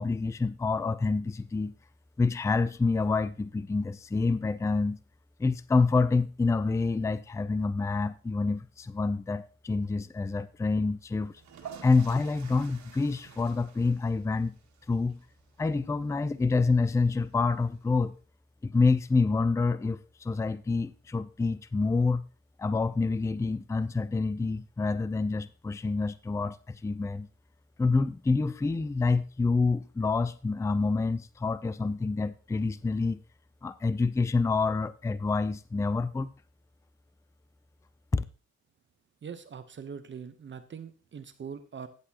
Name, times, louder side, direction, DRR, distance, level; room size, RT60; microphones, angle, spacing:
voice 1, 0.0-1.7 2.2-5.0 5.4-11.3 11.8-14.5 14.9-15.2 15.6-18.1 18.6-22.2 22.6-27.3 27.8-33.2 33.6-36.3 38.1-38.2, left 3 dB, 10° left, 0.4 m, -27 dB
sound 1, 11.3-18.1, right 7 dB, 70° right, 2.1 m, -51 dB
voice 2, 39.2-41.9, right 6 dB, 40° right, 0.9 m, -42 dB
13.0 x 7.9 x 2.9 m
cardioid pair, 90°, 30 cm